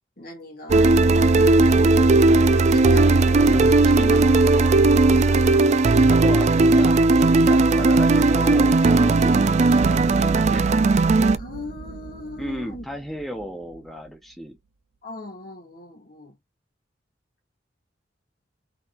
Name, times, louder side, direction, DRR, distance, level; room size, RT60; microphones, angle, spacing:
voice 1, 0.2-0.9 1.3-2.4 2.7-3.4 11.4-12.8 15.0-16.4, left 2 dB, 55° left, 2.3 m, -39 dB
sound 1, 0.7-11.4, right 3 dB, 40° right, 0.4 m, -17 dB
voice 2, 3.5-4.7 6.1-10.7 12.4-14.6, equal, ahead, 0.8 m, -35 dB
sound 2, 9.8-14.1, right 3 dB, 80° right, 0.7 m, -36 dB
4.1 x 3.9 x 2.6 m
head